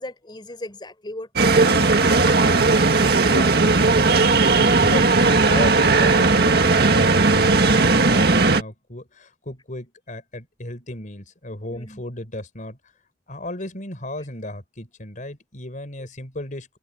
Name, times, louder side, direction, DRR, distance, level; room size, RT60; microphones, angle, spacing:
voice 1, 0.0-2.0 11.7-12.0 14.2-14.3 16.0-16.1, left 1 dB, 25° left, 4.1 m, -37 dB
sound 1, 1.4-8.6, right 3 dB, 60° right, 1.8 m, -17 dB
voice 2, 3.3-12.8 13.3-16.8, left 1 dB, 45° left, 4.4 m, -34 dB
head